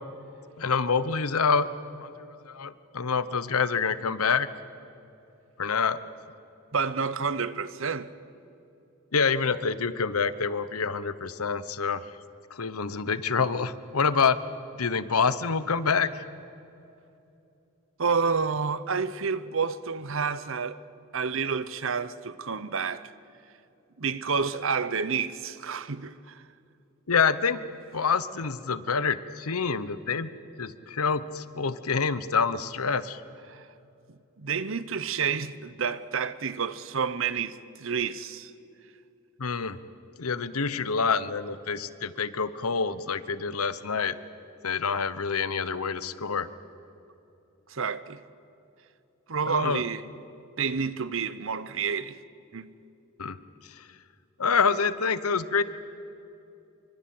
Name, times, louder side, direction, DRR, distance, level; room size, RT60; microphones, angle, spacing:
voice 1, 0.6-1.7 2.0-4.5 5.6-6.0 9.1-12.0 12.5-14.4 14.8-16.1 27.1-27.6 27.9-30.3 30.6-33.2 39.4-39.8 40.2-44.1 44.6-46.5 49.5-49.8 53.2-53.4 54.4-55.6, left 5 dB, 90° left, 1.0 m, -27 dB
voice 2, 6.7-8.1 18.0-20.8 21.1-23.1 24.0-26.4 33.5-33.7 34.1-38.5 47.7-48.2 49.3-50.1 50.6-52.2 52.5-52.7, right 5 dB, 60° right, 0.9 m, -29 dB
25.5 x 24.5 x 7.8 m
head